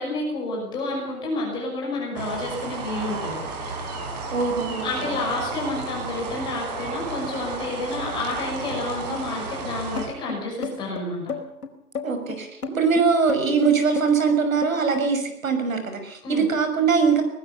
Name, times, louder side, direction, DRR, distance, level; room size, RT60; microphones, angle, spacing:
voice 1, 0.0-3.4 4.8-11.2 16.2-16.5, left 2 dB, 10° left, -2 dB, 6.0 m, -29 dB
sound 1, 2.2-10.1, right 3 dB, 25° right, 5.3 m, -33 dB
voice 2, 4.3-4.9 12.0-17.2, right 5 dB, 60° right, 7 dB, 6.2 m, -22 dB
sound 2, 10.0-15.1, left 5 dB, 70° left, 4.8 m, -32 dB
23.0 x 19.5 x 6.9 m, 0.77 s
hypercardioid pair, 170°, 45 cm